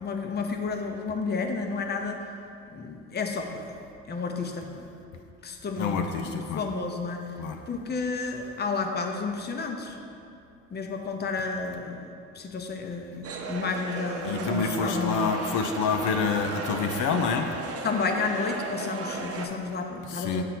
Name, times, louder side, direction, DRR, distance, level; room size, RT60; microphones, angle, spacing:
voice 1, 0.0-2.2 2.7-3.8 4.1-4.9 5.4-7.3 7.7-10.0 10.7-12.1 12.3-15.3 17.8-20.4, left 4 dB, 35° left, 4 dB, 0.6 m, -31 dB
voice 2, 5.8-6.6 7.4-7.6 14.2-17.5 20.1-20.4, left 5 dB, 85° left, 5 dB, 0.5 m, -27 dB
sound 1, 13.2-19.5, right 4 dB, 50° right, 0.7 m, -36 dB
7.3 x 2.7 x 5.9 m, 2.5 s
cardioid pair, 90°, 30 cm